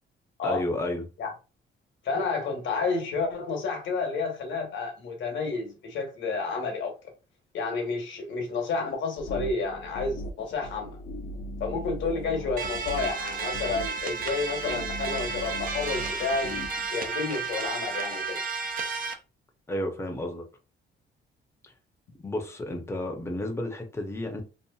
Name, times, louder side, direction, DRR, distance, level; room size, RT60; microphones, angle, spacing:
voice 1, 0.4-1.1 19.7-20.5 21.6-21.7 22.2-24.4, left 1 dB, 15° left, 0.7 m, -31 dB
voice 2, 2.0-6.9 7.5-11.0 11.6-16.5 16.9-18.4, left 4 dB, 70° left, 1.1 m, -30 dB
sound 1, 9.2-16.9, left 1 dB, 50° left, 0.6 m, -39 dB
sound 2, 12.6-19.1, right 4 dB, 45° right, 0.5 m, -32 dB
2.7 x 2.4 x 2.3 m
cardioid pair, 90°, 20 cm